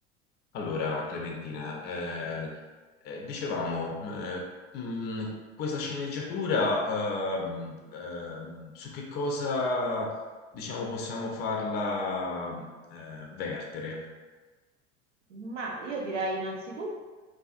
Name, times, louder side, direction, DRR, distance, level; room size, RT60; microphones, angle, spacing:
voice 1, 0.5-2.5 3.0-4.4 4.7-10.1 10.5-12.6 12.9-14.0, left 3 dB, 30° left, 0 dB, 0.4 m, -32 dB
voice 2, 15.3-16.9, right 2 dB, 80° right, -1 dB, 0.6 m, -33 dB
2.4 x 2.3 x 2.4 m, 1.3 s
figure-of-eight pair, 70°, 36 cm